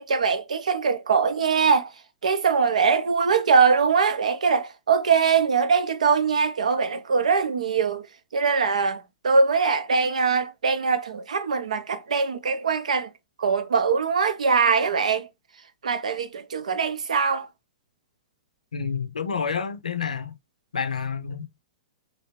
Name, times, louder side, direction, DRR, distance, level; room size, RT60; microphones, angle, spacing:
voice 1, 0.0-1.9 2.2-8.1 8.3-13.1 13.4-15.3 15.8-17.5, right 5 dB, 65° right, 0.5 m, -22 dB
voice 2, 18.7-20.3 20.7-21.6, left 6 dB, 75° left, 0.5 m, -29 dB
3.2 x 2.5 x 3.0 m
figure-of-eight pair, 105°, 4 cm